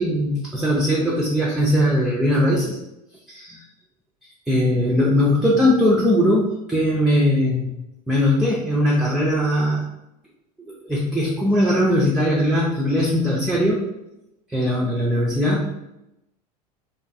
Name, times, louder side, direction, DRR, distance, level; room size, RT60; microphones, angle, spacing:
voice 1, 0.0-2.8 4.5-7.8 8.1-9.9 10.6-13.8 14.5-15.7, equal, ahead, -4 dB, 0.4 m, -20 dB
2.7 x 2.2 x 2.4 m, 0.88 s
figure-of-eight pair, 80°, 21 cm